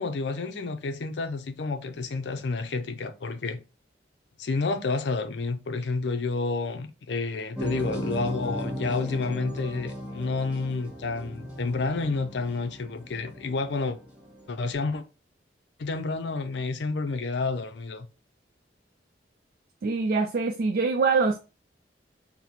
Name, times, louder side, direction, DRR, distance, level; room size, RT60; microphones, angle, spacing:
voice 1, 0.0-3.6 4.4-14.0 14.5-15.0 15.8-18.1, left 3 dB, 70° left, 0.5 m, -30 dB
sound 1, 7.5-14.6, equal, 5° right, 0.9 m, -36 dB
voice 2, 19.8-21.4, right 4 dB, 50° right, 0.3 m, -24 dB
4.0 x 2.1 x 4.3 m
head